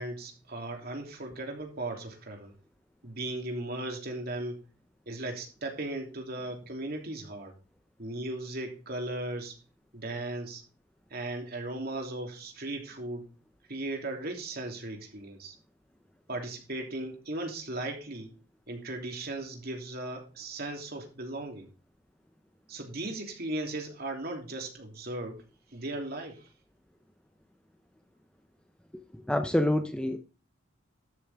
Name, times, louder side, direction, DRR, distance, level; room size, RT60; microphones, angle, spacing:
voice 1, 0.0-2.5 3.0-4.6 5.1-7.5 8.0-9.6 9.9-10.6 11.1-13.2 13.7-15.5 16.3-18.3 18.7-21.7 22.7-25.4 25.7-26.5, right 2 dB, 50° right, 2 dB, 3.1 m, -37 dB
voice 2, 29.3-30.2, left 1 dB, 5° left, 7 dB, 0.8 m, -26 dB
13.0 x 7.0 x 3.6 m, 0.34 s
head